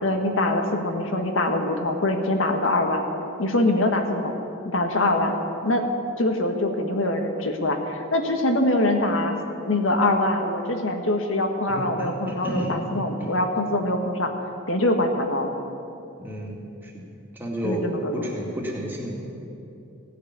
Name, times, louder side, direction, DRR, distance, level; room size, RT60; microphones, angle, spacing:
voice 1, 0.0-3.0 3.4-4.3 4.6-5.3 5.6-5.8 6.2-9.4 9.7-14.3 14.7-15.5 17.6-18.3, left 1 dB, 80° left, 4 dB, 1.4 m, -23 dB
voice 2, 11.7-13.0 16.2-16.9 17.4-17.8 18.1-19.2, equal, 10° right, -3 dB, 2.2 m, -31 dB
16.0 x 6.7 x 9.6 m, 2.8 s
head